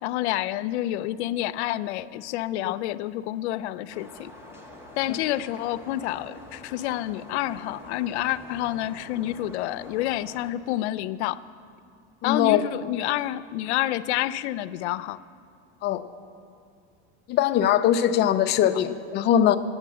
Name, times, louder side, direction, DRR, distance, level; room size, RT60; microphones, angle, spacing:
voice 1, 0.0-4.3 5.0-11.4 12.2-15.2, left 14 dB, 85° left, 14 dB, 0.5 m, -28 dB
sound 1, 3.9-10.5, left 1 dB, 5° right, 1.2 m, -46 dB
voice 2, 12.2-12.6 15.8-16.0 17.3-19.6, left 10 dB, 30° left, 9 dB, 0.5 m, -21 dB
11.5 x 8.9 x 7.5 m, 2.3 s
supercardioid pair, 145°, 33 cm